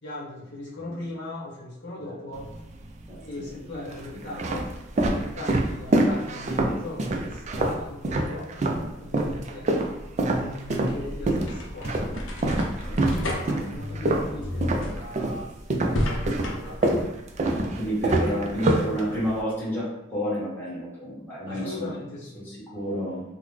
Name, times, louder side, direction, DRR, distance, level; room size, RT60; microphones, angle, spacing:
voice 1, 0.0-2.5 3.2-8.5 9.0-9.7 10.4-12.1 13.1-16.8 18.0-18.5 21.4-22.8, left 2 dB, 60° left, -7 dB, 1.0 m, -39 dB
voice 2, 0.8-1.1 2.0-2.1 3.1-3.5 3.8-4.0 12.5-13.6 17.4-21.9 22.3-23.2, equal, 10° left, -10 dB, 1.3 m, -31 dB
sound 1, 2.3-3.1 3.7-8.9 9.1-15.4 15.7-19.4, right 2 dB, 35° right, 0.3 m, -25 dB
sound 2, 10.4-17.0, left 1 dB, 75° left, 0.6 m, -33 dB
3.7 x 2.1 x 3.1 m, 0.88 s
head